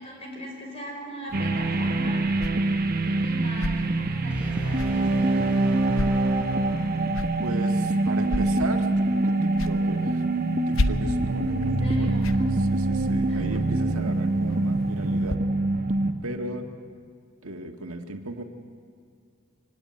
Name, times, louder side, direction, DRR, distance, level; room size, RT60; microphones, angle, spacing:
voice 1, 0.0-2.3 3.2-5.5 11.5-12.5 13.3-13.5, left 1 dB, 30° left, 0 dB, 5.5 m, -39 dB
sound 1, 1.3-15.4, left 2 dB, 65° left, 0.8 m, -36 dB
sound 2, 1.3-16.1, right 2 dB, 45° right, 1.1 m, -24 dB
sound 3, 4.3-7.3, equal, 5° right, 3.7 m, -37 dB
voice 2, 7.4-10.2 10.7-11.7 12.0-12.2 12.7-15.4 16.2-16.7 17.4-18.4, right 2 dB, 85° right, 4 dB, 1.7 m, -35 dB
24.0 x 17.0 x 9.8 m, 2.2 s
head